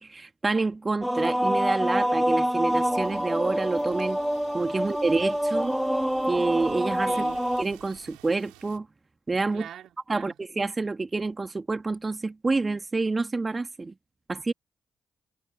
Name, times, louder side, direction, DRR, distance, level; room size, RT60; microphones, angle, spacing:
voice 1, 0.0-4.2 4.5-5.8 6.3-7.1 7.6-8.9 9.3-9.7 10.1-13.9 14.3-14.5, right 3 dB, 35° right, 2.4 m, -28 dB
sound 1, 1.0-7.6, equal, 5° right, 2.5 m, -26 dB
sound 2, 1.5-7.6, left 22 dB, 85° left, 5.8 m, -52 dB
sound 3, 2.7-8.8, right 25 dB, 85° right, 7.7 m, -53 dB
voice 2, 7.1-7.5 9.5-10.3, right 10 dB, 70° right, 3.4 m, -43 dB
hypercardioid pair, 40°, 0 cm